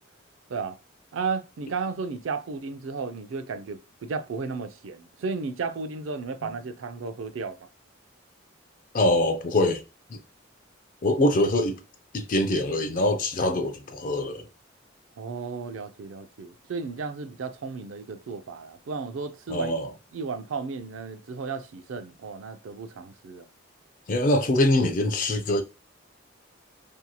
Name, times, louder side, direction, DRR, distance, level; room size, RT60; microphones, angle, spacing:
voice 1, 1.1-7.6 15.2-19.8 20.1-23.5, right 4 dB, 80° right, 0.4 m, -34 dB
voice 2, 8.9-9.8 10.1-10.2 11.0-11.8 12.1-14.5 19.5-19.9 24.1-25.6, left 1 dB, 40° left, 0.4 m, -23 dB
2.8 x 2.7 x 2.2 m
head